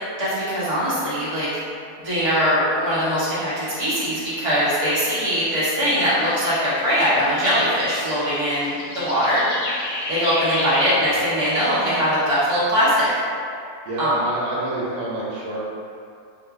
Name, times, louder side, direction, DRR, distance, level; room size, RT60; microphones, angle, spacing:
voice 1, 0.2-1.5 2.0-9.4 10.1-13.1 14.0-14.2, equal, 25° right, -11 dB, 0.9 m, -21 dB
birds in park filtered, 5.2-12.1, left 1 dB, 75° left, 1.0 m, -33 dB
voice 2, 13.8-15.6, right 2 dB, 85° right, -6 dB, 1.3 m, -28 dB
2.9 x 2.4 x 3.6 m, 2.4 s
omnidirectional pair, 1.6 m